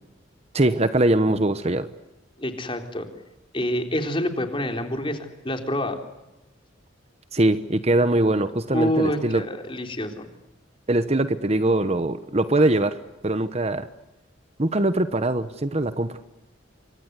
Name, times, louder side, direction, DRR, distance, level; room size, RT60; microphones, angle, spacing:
voice 1, 0.5-1.9 7.3-9.4 10.9-13.9 14.6-16.2, right 2 dB, 35° right, 12 dB, 1.0 m, -22 dB
voice 2, 2.4-3.1 3.5-6.0 8.7-10.3, left 1 dB, 25° left, 5 dB, 3.7 m, -27 dB
27.5 x 24.5 x 8.2 m, 1.0 s
head